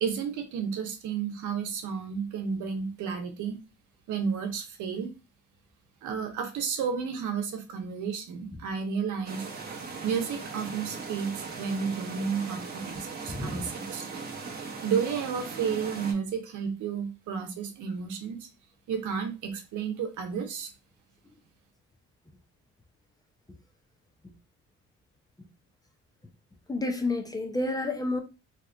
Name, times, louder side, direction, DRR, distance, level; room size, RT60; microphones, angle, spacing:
voice 1, 0.0-3.6 4.1-5.1 6.0-9.5 10.0-14.1 14.8-18.5 18.9-20.7, right 6 dB, 80° right, 0.8 m, -32 dB
sound 1, 9.3-16.1, right 4 dB, 30° right, 0.9 m, -39 dB
voice 2, 13.3-13.7 26.7-28.2, left 2 dB, 10° left, 0.6 m, -30 dB
2.9 x 2.4 x 3.4 m
cardioid pair, 90°, 30 cm